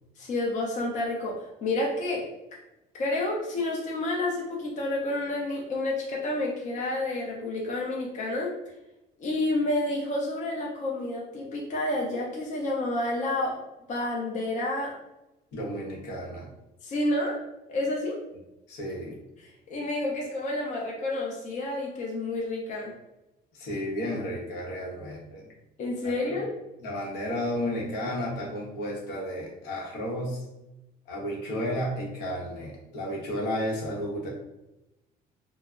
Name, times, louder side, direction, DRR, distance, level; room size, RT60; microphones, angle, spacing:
voice 1, 0.2-2.3 2.9-8.5 9.2-13.6 13.9-14.9 16.8-17.4 17.7-18.2 19.7-22.9 25.8-26.5, left 2 dB, 45° left, -2 dB, 0.6 m, -29 dB
voice 2, 15.5-16.5 18.7-19.1 23.5-25.5 26.0-26.3 26.8-30.4 31.1-34.3, equal, 80° left, -2 dB, 0.8 m, -32 dB
2.1 x 2.0 x 3.5 m, 0.93 s
cardioid pair, 110°, 17 cm